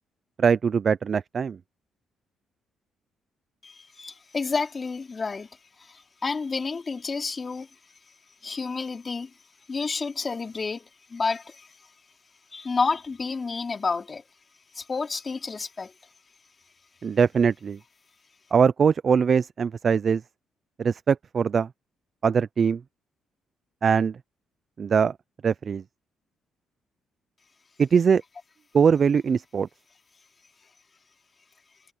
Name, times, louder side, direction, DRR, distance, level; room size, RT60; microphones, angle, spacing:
voice 1, 0.4-1.6 17.0-17.8 18.5-20.2 20.8-21.7 22.2-22.8 23.8-24.2 24.8-25.1 25.4-25.8 27.8-28.2 28.7-29.7, right 6 dB, 45° right, 0.4 m, -21 dB
voice 2, 3.6-5.5 5.8-7.7 8.4-9.3 9.7-11.7 12.5-14.2 14.7-15.9, left 4 dB, 35° left, 3.2 m, -30 dB
cardioid pair, 90°, 0 cm